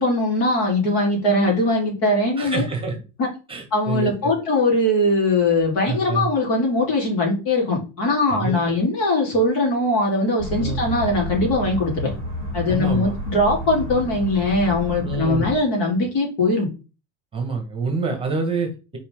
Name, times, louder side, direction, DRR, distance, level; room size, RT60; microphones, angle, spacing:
voice 1, 0.0-2.6 3.2-3.3 3.7-12.1 12.5-16.7, left 2 dB, 65° left, 0 dB, 3.6 m, -21 dB
voice 2, 2.4-3.0 3.5-4.3 5.8-6.3 8.3-8.5 10.5-10.8 12.7-13.1 15.0-15.5 17.3-19.0, right 4 dB, 15° right, 3 dB, 1.4 m, -26 dB
sound 1, 10.4-15.6, left 1 dB, 25° left, 3.3 m, -30 dB
5.6 x 4.7 x 3.7 m, 0.32 s
cardioid pair, 150°, 40 cm